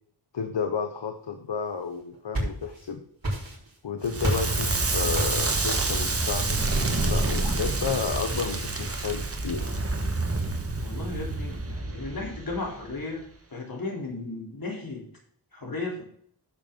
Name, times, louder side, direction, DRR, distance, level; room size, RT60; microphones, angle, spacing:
voice 1, 0.3-3.0 3.8-9.7, left 6 dB, 80° left, 7 dB, 0.9 m, -32 dB
sound 1, 1.9-2.9 3.2-3.8 4.2-4.6 5.1-5.5, right 1 dB, 55° right, 3.9 m, -30 dB
Crackle, 4.0-13.0, right 2 dB, 35° right, 1.3 m, -28 dB
voice 2, 10.8-13.2 13.5-15.1 15.5-16.0, left 3 dB, 55° left, -1 dB, 3.2 m, -35 dB
11.0 x 7.1 x 3.7 m, 0.63 s
wide cardioid pair, 65°, 42 cm